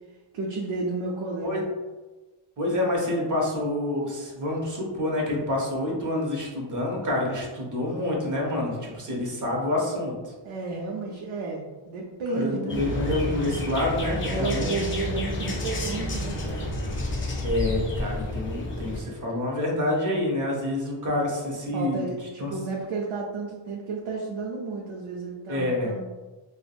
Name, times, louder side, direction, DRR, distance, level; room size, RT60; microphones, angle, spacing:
voice 1, 0.3-1.6 10.4-12.9 14.3-16.7 21.7-26.0, right 3 dB, 70° right, -2 dB, 0.5 m, -32 dB
voice 2, 2.6-10.3 12.3-14.7 17.4-22.0 22.4-22.5 25.5-25.9, left 1 dB, 35° right, -1 dB, 0.8 m, -27 dB
sound 1, 12.7-19.0, left 1 dB, 25° left, 0.4 m, -30 dB
3.3 x 2.0 x 2.3 m, 1.2 s
wide cardioid pair, 110°, 50 cm